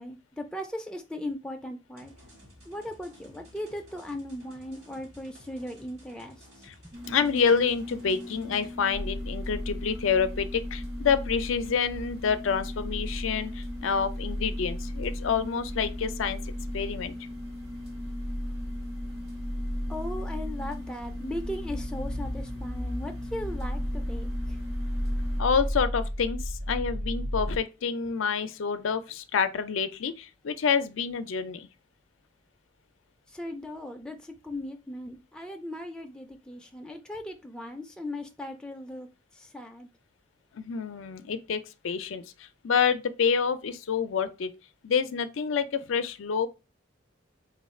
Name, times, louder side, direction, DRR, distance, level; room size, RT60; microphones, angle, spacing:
voice 1, 0.0-2.1 2.7-6.9 19.9-24.6 33.3-39.1 39.3-39.9, left 1 dB, 5° left, 0.4 m, -38 dB
sound 1, 2.0-8.7, equal, 90° right, 2.4 m, -54 dB
sound 2, 6.9-25.4, left 1 dB, 55° right, 1.3 m, -41 dB
voice 2, 7.0-16.4 16.7-17.1 25.4-31.7 40.5-44.5 44.8-46.5, left 6 dB, 85° left, 0.5 m, -28 dB
sound 3, 8.9-27.6, equal, 40° right, 0.6 m, -34 dB
3.7 x 2.3 x 4.2 m
head